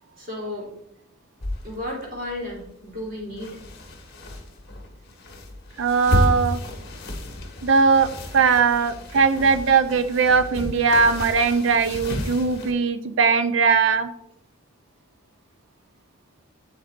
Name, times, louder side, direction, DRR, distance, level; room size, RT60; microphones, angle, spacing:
voice 1, 0.2-0.7 1.6-3.6, left 1 dB, 45° right, -4 dB, 2.9 m, -33 dB
sound 1, 1.4-12.7, equal, 50° left, 1.3 m, -31 dB
voice 2, 5.8-6.6 7.6-14.1, right 5 dB, 65° right, 11 dB, 0.4 m, -20 dB
7.9 x 7.9 x 2.5 m, 0.78 s
head